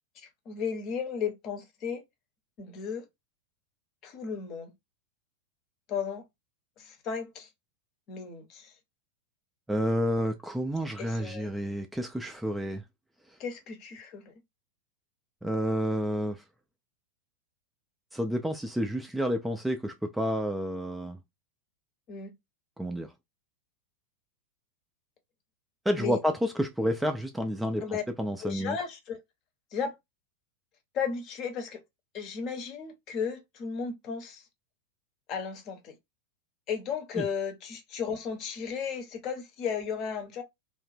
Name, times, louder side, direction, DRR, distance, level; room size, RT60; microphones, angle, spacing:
voice 1, 0.2-2.0 2.6-3.0 4.0-4.7 5.9-6.2 6.8-7.5 8.1-8.7 11.0-11.5 13.4-14.3 22.1-22.3 26.0-26.2 27.8-28.0 28.4-29.2 29.7-29.9 30.9-31.8 32.1-34.4 35.3-36.0 36.7-40.4, left 6 dB, 35° left, 0.7 m, -34 dB
voice 2, 9.7-12.8 15.4-16.4 18.1-21.2 22.8-23.1 25.9-28.8 37.2-37.3, equal, 5° right, 0.3 m, -30 dB
2.5 x 2.1 x 3.2 m
figure-of-eight pair, 90°, 0 cm